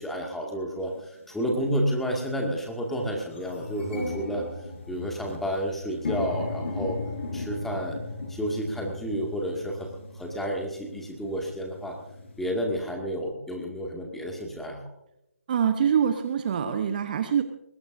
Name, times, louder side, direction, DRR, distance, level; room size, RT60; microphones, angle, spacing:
voice 1, 0.0-4.4 4.9-7.0 7.3-8.0 8.3-9.9 10.1-12.0 12.4-14.8, equal, 5° left, 0 dB, 2.2 m, -30 dB
sound 1, 0.9-1.0 1.8-2.0 2.4-2.5 2.8-12.5, left 3 dB, 55° left, 4.3 m, -36 dB
voice 2, 15.5-17.4, right 8 dB, 35° right, 8 dB, 1.0 m, -24 dB
21.5 x 18.5 x 2.7 m, 0.85 s
figure-of-eight pair, 150°, 8 cm